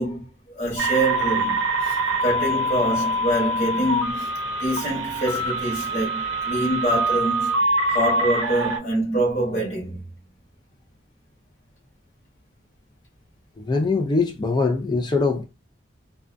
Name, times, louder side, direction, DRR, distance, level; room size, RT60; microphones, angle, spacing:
voice 1, 0.0-4.3 4.6-7.6 7.9-10.0, right 1 dB, 40° left, 1.0 m, -25 dB
sound 1, 0.8-8.8, right 1 dB, 80° right, 0.6 m, -24 dB
voice 2, 13.6-15.4, left 3 dB, 20° left, 0.4 m, -22 dB
2.4 x 2.2 x 2.5 m
head